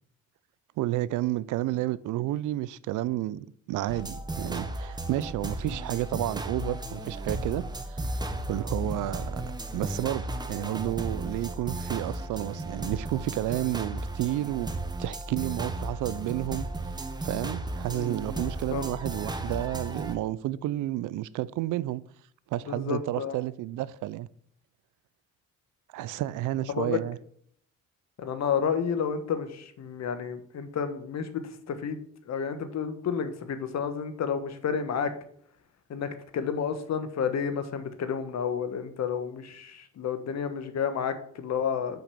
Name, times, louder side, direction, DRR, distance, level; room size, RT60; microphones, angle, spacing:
voice 1, 0.8-8.0 8.5-9.4 9.7-14.7 15.0-16.7 17.2-22.0 22.5-24.3 25.9-27.2, right 15 dB, 80° right, 0.5 m, -31 dB
sound 1, 3.9-20.1, right 2 dB, 15° right, 0.9 m, -35 dB
voice 2, 17.9-18.9 22.7-23.4 26.7-27.0 28.2-35.1 35.9-42.0, left 7 dB, 60° left, 1.2 m, -31 dB
6.0 x 5.2 x 6.8 m
cardioid pair, 90°, 30 cm